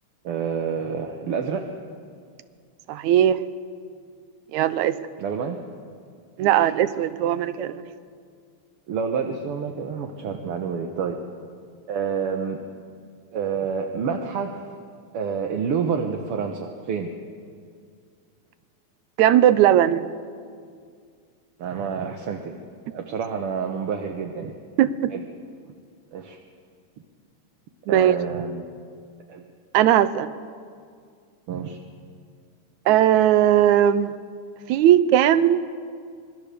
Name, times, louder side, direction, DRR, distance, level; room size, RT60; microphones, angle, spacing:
voice 1, 0.2-1.7 5.2-5.6 6.6-6.7 8.9-11.2 11.9-12.6 13.3-14.7 15.1-17.1 21.6-22.6 22.9-24.5 25.1-25.2 26.1-26.4 27.9-28.7 29.3-29.4 31.5-31.8, right 6 dB, 60° right, 4 dB, 1.8 m, -28 dB
voice 2, 2.9-3.4 4.5-5.0 6.4-7.8 19.2-20.1 24.8-25.1 27.9-28.1 29.7-30.3 32.9-34.1 34.7-35.6, right 11 dB, 75° right, 14 dB, 2.1 m, -18 dB
26.0 x 21.0 x 6.8 m, 2.2 s
omnidirectional pair, 3.4 m